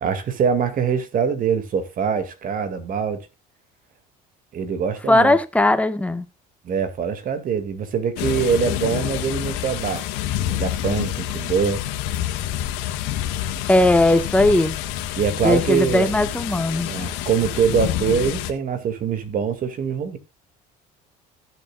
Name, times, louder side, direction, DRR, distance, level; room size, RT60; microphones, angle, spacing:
voice 1, 0.0-3.3 4.5-5.4 6.6-10.0 10.5-11.8 15.2-16.1 16.9-20.2, right 6 dB, 50° right, 2.2 m, -23 dB
voice 2, 5.1-6.2 13.7-14.8 15.4-16.9, left 1 dB, 5° left, 1.5 m, -18 dB
sound 1, 8.2-18.5, left 12 dB, 80° left, 1.6 m, -27 dB
15.5 x 7.5 x 2.4 m
supercardioid pair, 85°, 19 cm